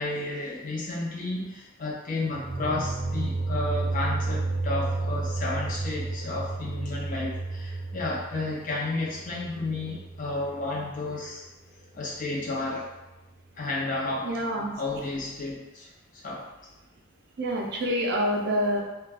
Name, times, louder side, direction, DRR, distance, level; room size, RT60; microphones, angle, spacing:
voice 1, 0.0-11.5 11.9-12.9 13.6-14.2 14.8-15.9 16.2-16.5, left 2 dB, 40° left, -4 dB, 0.5 m, -32 dB
sound 1, 2.3-11.2, right 3 dB, 85° left, 1.0 m, -32 dB
voice 2, 14.2-14.7 17.4-18.8, equal, 50° right, 0 dB, 0.4 m, -27 dB
2.3 x 2.2 x 3.3 m, 1.0 s
head